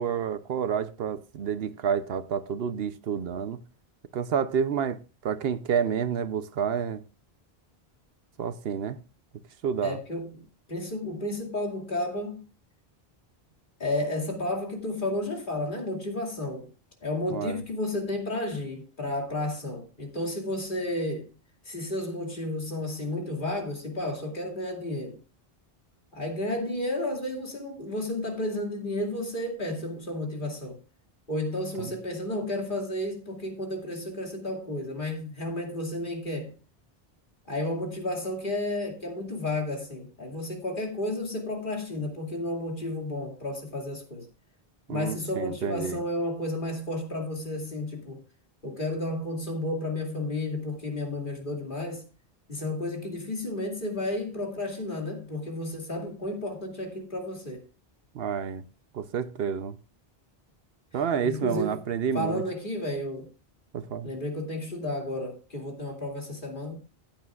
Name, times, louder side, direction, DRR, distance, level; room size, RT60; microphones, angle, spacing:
voice 1, 0.0-3.6 4.1-5.0 5.2-7.0 8.4-9.0 9.6-10.0 17.3-17.6 31.8-31.9 44.9-46.0 58.1-58.6 58.9-59.8 60.9-62.4 63.7-64.1, right 7 dB, 70° right, 0.9 m, -29 dB
voice 2, 9.8-10.4 10.7-12.4 13.8-16.7 17.0-21.3 21.6-25.2 26.1-30.8 31.3-36.6 37.5-44.3 44.9-48.2 48.6-52.1 52.5-57.6 61.2-61.8 62.1-63.3 64.0-66.8, left 1 dB, 50° left, 2.7 m, -32 dB
15.0 x 8.7 x 2.4 m
omnidirectional pair, 1.1 m